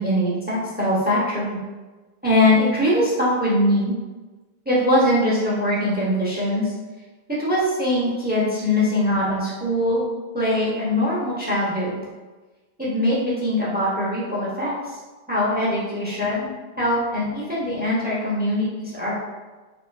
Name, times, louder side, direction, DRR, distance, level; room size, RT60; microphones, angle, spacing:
voice 1, 0.0-1.6 2.2-3.9 4.7-6.7 7.4-10.0 10.3-12.0 12.8-15.0 15.3-16.5 16.8-19.1, left 1 dB, 10° right, -7 dB, 0.7 m, -22 dB
4.3 x 2.5 x 2.3 m, 1.2 s
omnidirectional pair, 1.1 m